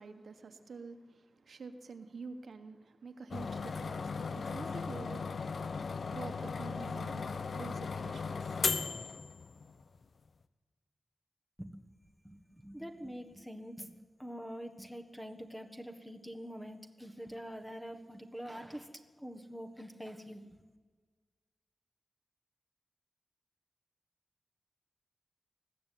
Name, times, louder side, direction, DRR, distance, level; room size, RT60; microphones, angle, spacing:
voice 1, 0.0-5.3 6.1-7.2 7.5-8.6, right 4 dB, 65° right, 1.4 m, -48 dB
sound 1, 3.3-9.8, left 5 dB, 55° left, 0.8 m, -37 dB
voice 2, 12.2-18.9 19.2-20.5, equal, ahead, 1.5 m, -45 dB
20.5 x 15.0 x 9.4 m
wide cardioid pair, 175°, 0 cm